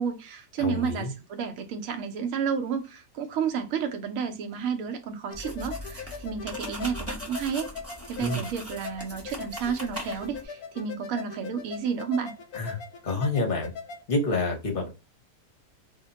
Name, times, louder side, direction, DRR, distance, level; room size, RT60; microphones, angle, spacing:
voice 1, 0.0-7.8 8.1-12.3, right 7 dB, 65° right, 1.0 m, -31 dB
voice 2, 0.6-1.1 8.2-8.4 12.5-12.8 13.0-13.7 14.1-14.9, left 2 dB, 40° left, 0.9 m, -28 dB
sound 1, 5.3-14.0, left 6 dB, 70° left, 1.0 m, -41 dB
sound 2, 5.3-10.5, equal, 20° right, 0.4 m, -40 dB
2.8 x 2.2 x 3.9 m
omnidirectional pair, 1.8 m